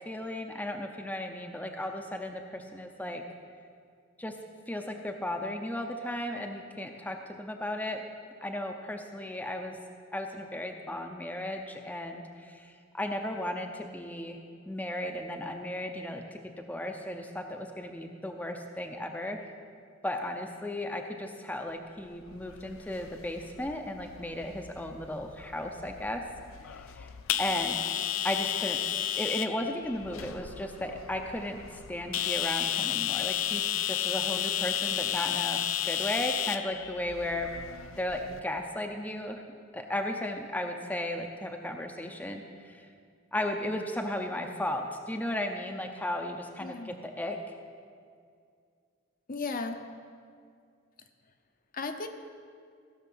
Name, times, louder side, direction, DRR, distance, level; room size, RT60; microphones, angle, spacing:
voice 1, 0.1-3.2 4.2-4.4 4.7-8.0 8.4-9.8 10.1-14.4 14.7-19.4 20.0-26.2 26.7-27.1 27.4-27.8 28.2-37.5 38.0-39.4 39.7-42.9 43.3-47.4, left 1 dB, 10° left, 3 dB, 0.6 m, -35 dB
sound 1, 22.3-38.4, left 11 dB, 75° left, 0.5 m, -33 dB
voice 2, 49.3-49.8 51.7-52.1, left 3 dB, 45° left, 6 dB, 0.7 m, -35 dB
15.5 x 6.5 x 6.0 m, 2.2 s
head